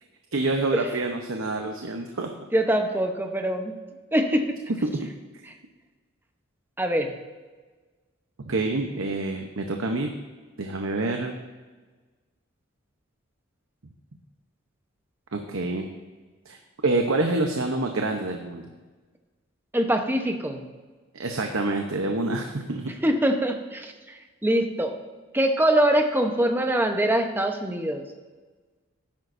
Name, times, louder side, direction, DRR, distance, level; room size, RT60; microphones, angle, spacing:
voice 1, 0.3-2.3 4.8-5.1 8.5-10.1 10.6-11.4 15.3-15.9 16.5-16.6 16.8-18.6 21.2-22.9, right 2 dB, 85° right, 4 dB, 0.9 m, -27 dB
voice 2, 2.5-3.8 4.1-4.6 6.8-7.1 19.7-20.6 23.0-23.9 24.4-25.0 25.3-28.0, right 1 dB, 10° right, 5 dB, 0.9 m, -23 dB
13.0 x 10.5 x 2.6 m, 1.3 s
head